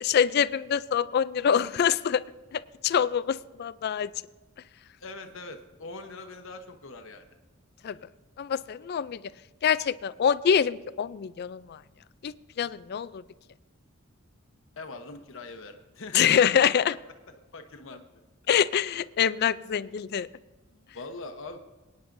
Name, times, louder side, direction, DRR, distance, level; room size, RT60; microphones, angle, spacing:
voice 1, 0.0-2.2 2.5-4.1 7.8-8.0 8.4-9.2 9.6-11.8 12.2-13.2 16.1-16.9 18.5-20.3, left 8 dB, 50° left, 16 dB, 0.3 m, -25 dB
voice 2, 5.0-7.3 7.9-8.1 14.8-16.6 17.5-18.0 20.7-21.6, left 3 dB, 65° left, 6 dB, 0.9 m, -42 dB
24.0 x 9.5 x 2.6 m, 1.2 s
head